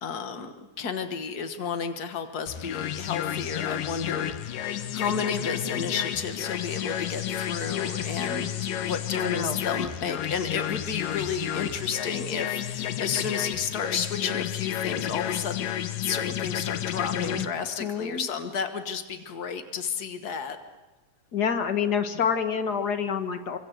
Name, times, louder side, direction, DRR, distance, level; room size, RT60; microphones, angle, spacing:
voice 1, 0.0-8.5 8.8-15.7 16.0-20.6, left 6 dB, 70° left, 8 dB, 0.9 m, -32 dB
sound 1, 2.5-17.5, left 11 dB, 90° left, 2.7 m, -31 dB
sound 2, 6.1-12.2, left 1 dB, 15° left, 1.4 m, -47 dB
voice 2, 9.1-9.6 17.1-17.5 17.8-18.2 21.3-23.6, left 7 dB, 50° left, 9 dB, 1.2 m, -27 dB
26.0 x 25.5 x 7.9 m, 1.1 s
omnidirectional pair, 3.7 m